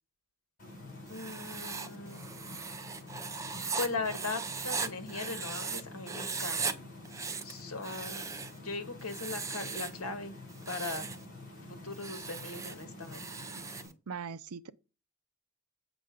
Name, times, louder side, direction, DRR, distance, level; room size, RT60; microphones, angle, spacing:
sound 1, 0.6-13.9, left 2 dB, 40° left, 5.2 m, -48 dB
voice 1, 1.1-2.2 3.8-6.9 7.4-10.3 10.7-11.1 11.6-13.3, left 3 dB, 75° left, 1.5 m, -39 dB
Writing, 1.1-5.8 6.1-6.7 7.0-8.6 9.0-10.0 10.5-11.2 11.9-13.9, right 5 dB, 15° right, 0.4 m, -38 dB
voice 2, 14.1-14.7, right 6 dB, 80° right, 0.6 m, -40 dB
7.8 x 5.0 x 5.1 m
head